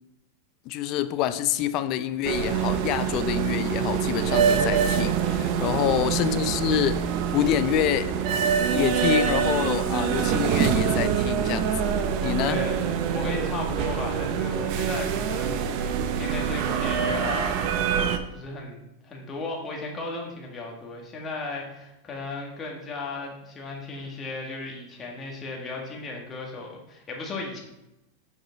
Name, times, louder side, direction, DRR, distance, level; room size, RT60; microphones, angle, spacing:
voice 1, 0.7-7.0 7.3-8.1 8.7-12.6, left 11 dB, 45° left, 13 dB, 0.5 m, -27 dB
sound 1, 2.2-18.2, right 7 dB, 55° right, 0.7 m, -25 dB
voice 2, 5.7-6.2 12.5-18.8 19.0-27.6, left 3 dB, 25° left, -1 dB, 1.8 m, -36 dB
6.6 x 4.9 x 4.1 m, 0.92 s
hypercardioid pair, 120°, 0 cm